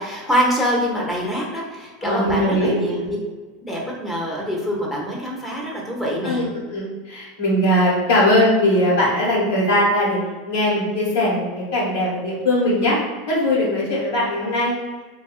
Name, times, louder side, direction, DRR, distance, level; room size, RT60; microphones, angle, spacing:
voice 1, 0.0-3.2 3.6-6.5, equal, 10° left, -2 dB, 1.1 m, -24 dB
voice 2, 2.0-3.1 6.2-6.4 6.7-10.2 10.4-13.0 13.3-14.7, left 1 dB, 70° left, -7 dB, 1.2 m, -20 dB
4.5 x 2.6 x 2.4 m, 1.3 s
hypercardioid pair, 90°, 0 cm